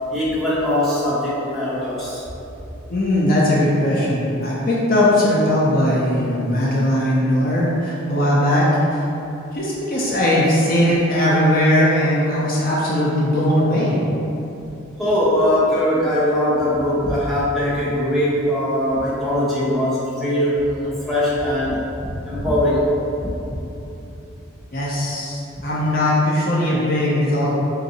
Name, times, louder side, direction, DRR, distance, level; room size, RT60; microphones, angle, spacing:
voice 1, 0.1-2.2 15.0-22.9 23.5-23.6 24.0-24.1, left 1 dB, ahead, -10 dB, 0.8 m, -21 dB
voice 2, 2.9-9.0 9.5-14.0 24.7-27.5, left 1 dB, 45° left, -6 dB, 0.6 m, -19 dB
3.9 x 2.7 x 4.0 m, 2.9 s
head